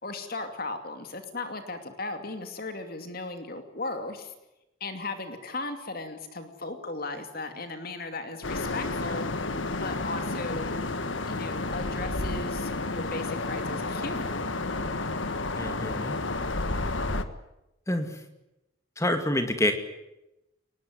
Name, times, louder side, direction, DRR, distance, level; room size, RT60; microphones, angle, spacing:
voice 1, 0.0-4.3 4.8-10.8 11.3-14.3, left 3 dB, 50° left, 7 dB, 2.6 m, -36 dB
sound 1, 8.4-17.2, left 2 dB, 70° left, 1.6 m, -31 dB
voice 2, 15.6-16.2 17.9-18.1 19.0-19.7, left 1 dB, 15° left, 7 dB, 2.4 m, -27 dB
23.5 x 20.0 x 9.6 m, 0.91 s
head